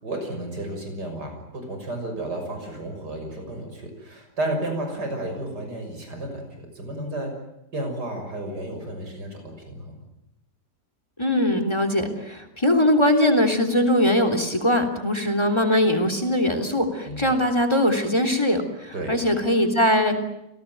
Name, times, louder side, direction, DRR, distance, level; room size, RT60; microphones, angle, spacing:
voice 1, 0.0-7.3 7.7-10.0 17.0-17.3 18.9-19.1, right 1 dB, 70° right, 4 dB, 7.0 m, -32 dB
voice 2, 11.2-20.2, left 1 dB, 15° left, 8 dB, 3.3 m, -21 dB
29.5 x 18.0 x 9.4 m, 0.87 s
omnidirectional pair, 1.8 m